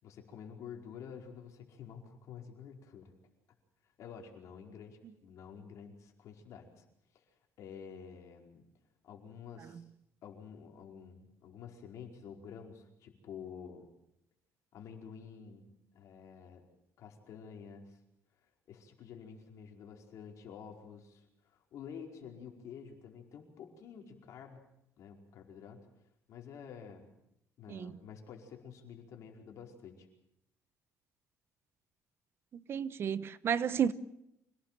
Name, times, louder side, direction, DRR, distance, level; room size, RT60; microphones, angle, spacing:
voice 1, 0.0-3.1 4.0-6.8 7.1-8.7 9.0-9.8 10.2-13.9 14.7-16.6 17.0-18.0 18.7-24.6 25.0-25.9 26.3-27.1 27.6-30.1, left 7 dB, 65° left, 4.8 m, -49 dB
voice 2, 32.5-33.9, right 8 dB, 45° right, 0.9 m, -32 dB
26.5 x 18.0 x 7.6 m
cardioid pair, 130°, 6 cm